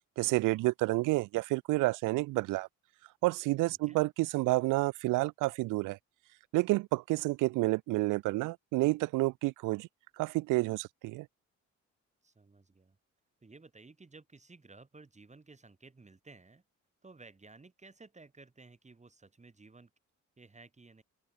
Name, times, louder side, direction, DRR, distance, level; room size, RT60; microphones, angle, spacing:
voice 1, 0.2-2.7 3.2-6.0 6.5-9.9 10.2-11.3, right 21 dB, 90° right, 0.5 m, -29 dB
voice 2, 3.7-4.0 12.2-13.0 13.4-16.6 17.0-19.9 20.4-21.0, right 3 dB, 25° right, 4.8 m, -55 dB
open air
cardioid pair, 90°, 30 cm